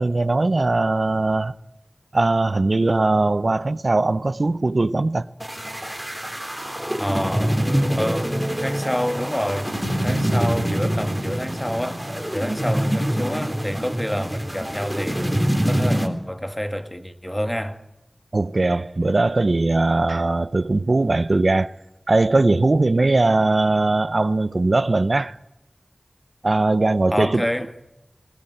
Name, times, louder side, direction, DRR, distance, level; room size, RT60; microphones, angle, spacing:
voice 1, 0.0-1.5 2.1-5.3 18.3-21.7 22.1-25.4 26.4-27.4, right 2 dB, 65° right, 0.7 m, -20 dB
sound 1, 5.4-16.1, equal, 5° right, 3.4 m, -25 dB
voice 2, 7.0-7.6 7.9-9.7 10.0-12.1 12.3-15.3 15.7-17.8 27.1-27.7, equal, 10° left, 1.9 m, -27 dB
19.5 x 18.5 x 9.2 m
wide cardioid pair, 60°, 0 cm